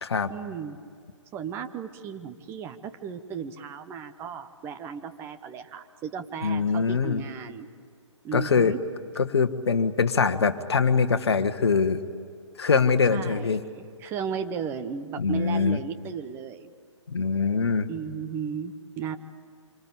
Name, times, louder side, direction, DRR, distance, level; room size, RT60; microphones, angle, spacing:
voice 1, 0.3-0.8 1.3-7.7 8.2-8.8 13.1-16.7 17.9-19.2, right 7 dB, 15° right, 8 dB, 0.9 m, -35 dB
voice 2, 6.4-7.2 8.3-8.7 9.2-12.0 12.6-13.6 15.2-15.8 17.1-17.9, left 5 dB, 55° left, 11 dB, 1.4 m, -23 dB
27.0 x 25.0 x 8.7 m, 2.2 s
figure-of-eight pair, 130°, 16 cm